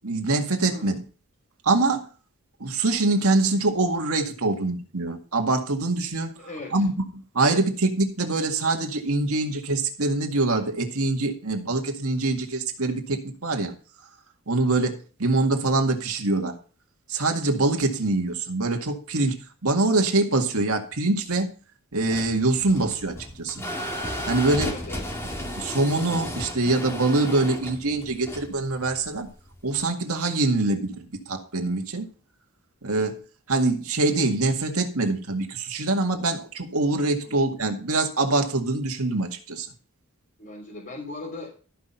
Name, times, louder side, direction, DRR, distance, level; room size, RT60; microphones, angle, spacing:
voice 1, 0.0-1.0 1.6-2.1 2.6-6.3 6.7-13.7 14.5-16.6 17.1-21.5 21.9-23.6 24.3-24.7 25.6-29.3 29.6-32.1 32.8-33.2 33.5-39.7, right 2 dB, 80° right, 4 dB, 2.0 m, -24 dB
voice 2, 6.4-6.9 24.6-25.0 37.2-37.3 40.4-41.5, left 2 dB, 45° left, -4 dB, 3.5 m, -38 dB
sound 1, 21.9-29.8, equal, 10° left, 2.3 m, -34 dB
13.5 x 6.0 x 5.5 m, 0.37 s
head